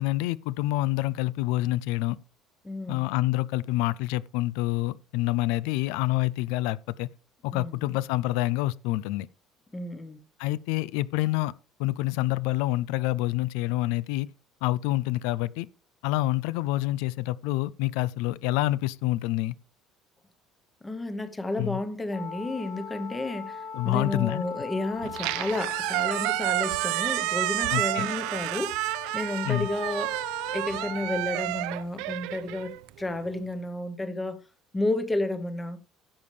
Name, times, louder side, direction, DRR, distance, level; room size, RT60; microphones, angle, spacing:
voice 1, 0.0-2.2 2.9-7.1 7.4-9.3 10.4-11.5 11.8-14.3 14.6-15.7 16.0-19.5 21.6-21.8 23.7-24.4 27.7-28.1 29.4-29.7, left 17 dB, 85° left, 0.4 m, -27 dB
voice 2, 2.6-3.0 7.5-8.0 9.7-10.2 20.8-30.2 30.5-34.4 34.7-35.8, left 2 dB, 10° left, 0.9 m, -32 dB
Wind instrument woodwind instrument, 22.1-31.3, left 4 dB, 40° left, 3.1 m, -40 dB
Squeak, 25.0-33.3, right 19 dB, 75° right, 0.6 m, -30 dB
16.0 x 6.9 x 3.3 m
cardioid pair, 175°, 0 cm